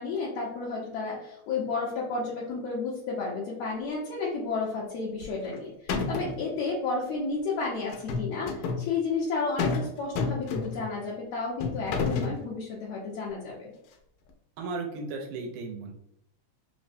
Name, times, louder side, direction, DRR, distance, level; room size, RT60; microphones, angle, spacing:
voice 1, 0.0-13.7, left 4 dB, 75° left, -5 dB, 1.7 m, -32 dB
sound 1, 5.2-5.6 5.9-6.4 7.9-8.8 9.6-9.9 10.2-10.9 11.6-12.4, left 4 dB, 90° left, 2.1 m, -29 dB
voice 2, 14.6-15.9, right 3 dB, 85° right, 1 dB, 2.0 m, -35 dB
4.9 x 2.1 x 2.5 m, 0.77 s
omnidirectional pair, 3.5 m